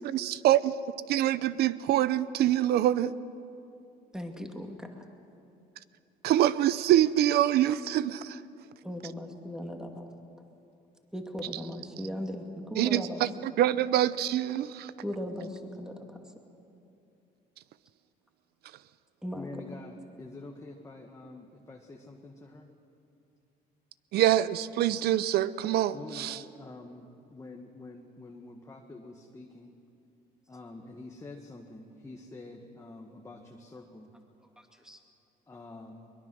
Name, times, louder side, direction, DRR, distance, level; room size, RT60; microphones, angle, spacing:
voice 1, 0.0-0.7 1.1-3.1 6.2-8.4 12.8-14.9 24.1-26.4, right 12 dB, 70° right, 17 dB, 0.7 m, -25 dB
voice 2, 4.1-5.1 8.8-10.1 11.1-13.2 15.0-16.2 19.2-19.5 34.6-35.0, equal, 5° right, 3 dB, 2.4 m, -38 dB
voice 3, 19.3-22.7 25.9-29.7 30.5-34.1 35.5-36.1, left 2 dB, 20° left, 1 dB, 1.6 m, -47 dB
23.0 x 21.5 x 6.3 m, 2.6 s
cardioid pair, 110°, 17 cm